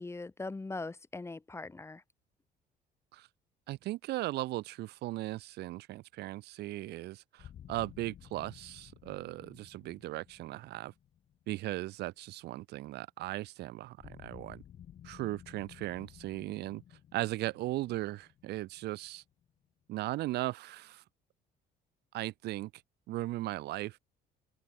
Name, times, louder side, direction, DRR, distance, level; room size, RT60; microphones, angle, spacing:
voice 1, 0.0-2.0, left 3 dB, 15° left, 1.3 m, -41 dB
voice 2, 3.7-10.9 11.5-14.6 15.0-16.8 17.1-19.2 19.9-21.0 22.1-22.7 23.1-24.0, right 17 dB, 75° right, 1.0 m, -37 dB
sound 1, 7.4-12.3 14.0-19.6, left 10 dB, 55° left, 4.8 m, -55 dB
open air
cardioid pair, 110°, 17 cm